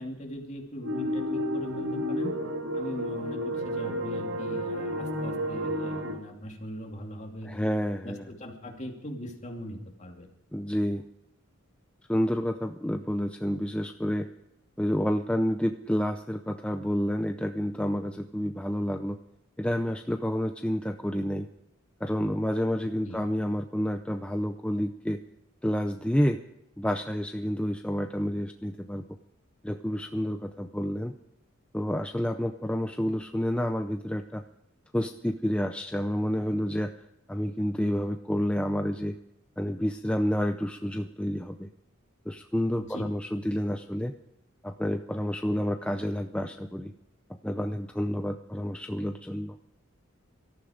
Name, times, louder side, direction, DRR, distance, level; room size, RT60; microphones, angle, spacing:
voice 1, 0.0-2.3 2.7-7.7 8.0-10.3 23.0-23.2 42.8-43.0, equal, 35° left, 1 dB, 2.7 m, -40 dB
sound 1, 0.8-6.2, equal, 75° right, 2.3 m, -31 dB
voice 2, 7.4-8.2 10.5-11.0 12.1-14.3 14.8-19.2 19.6-21.5 22.0-25.2 25.6-26.4 26.8-29.0 29.6-31.1 31.7-34.4 34.9-36.9 37.3-39.2 39.6-41.7 42.3-44.1 44.6-46.9 47.4-49.5, equal, 5° left, 6 dB, 0.5 m, -29 dB
19.0 x 13.5 x 5.1 m, 0.86 s
head